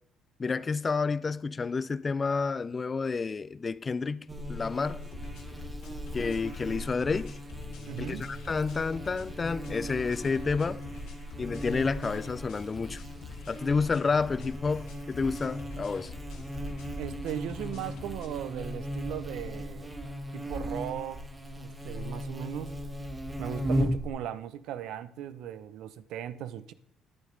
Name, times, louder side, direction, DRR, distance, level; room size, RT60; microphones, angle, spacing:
voice 1, 0.4-5.0 6.1-7.4 8.0-10.8 11.4-13.0 13.5-16.1, left 4 dB, 25° left, 0.3 m, -30 dB
Buzz, 4.3-24.1, equal, 15° right, 1.1 m, -37 dB
sound 1, 5.0-18.3, left 4 dB, 75° left, 2.2 m, -45 dB
voice 2, 7.9-8.3 17.0-19.9 20.3-21.3 21.6-22.8 23.4-26.7, right 10 dB, 75° right, 0.6 m, -37 dB
11.0 x 9.1 x 3.2 m
cardioid pair, 130°, 0 cm